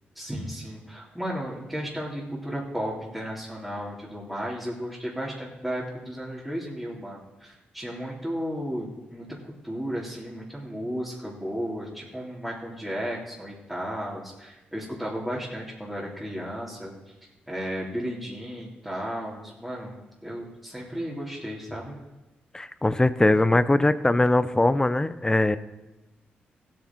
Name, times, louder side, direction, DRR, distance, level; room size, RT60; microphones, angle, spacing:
voice 1, 0.2-9.3 9.6-16.9 17.5-21.9, equal, 5° right, -7 dB, 3.5 m, -34 dB
voice 2, 22.5-25.6, left 2 dB, 20° left, 14 dB, 0.8 m, -21 dB
15.5 x 9.5 x 4.7 m, 1.1 s
supercardioid pair, 55°, 4 cm